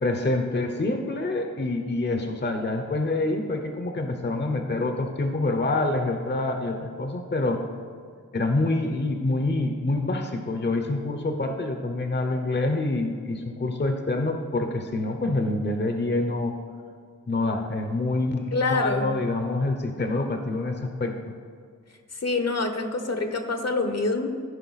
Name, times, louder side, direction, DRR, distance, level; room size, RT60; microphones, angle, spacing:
voice 1, 0.0-7.6 8.3-16.6 17.3-21.3, left 2 dB, 35° left, 5 dB, 0.7 m, -26 dB
voice 2, 18.5-19.1 22.2-24.3, left 3 dB, 60° left, 6 dB, 0.9 m, -26 dB
14.0 x 5.4 x 4.0 m, 2.1 s
wide cardioid pair, 65°, 30 cm